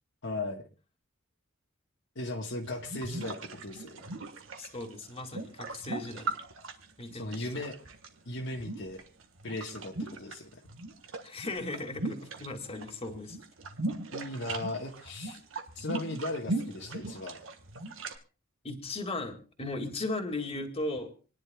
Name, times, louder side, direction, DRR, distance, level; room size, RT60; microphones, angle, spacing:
voice 1, 0.2-0.6 2.1-4.0 7.1-7.8 8.2-9.0 9.4-10.6 14.1-15.4 15.8-17.4, left 2 dB, 60° left, 1 dB, 1.4 m, -37 dB
sound 1, 2.7-8.1 8.5-10.4 10.6-12.9 13.2-18.2, right 2 dB, 70° right, 1.5 m, -38 dB
voice 2, 4.6-6.3 7.0-7.6 11.2-13.4 18.6-21.1, left 2 dB, 30° left, 4 dB, 2.1 m, -37 dB
27.0 x 10.5 x 2.3 m, 0.34 s
head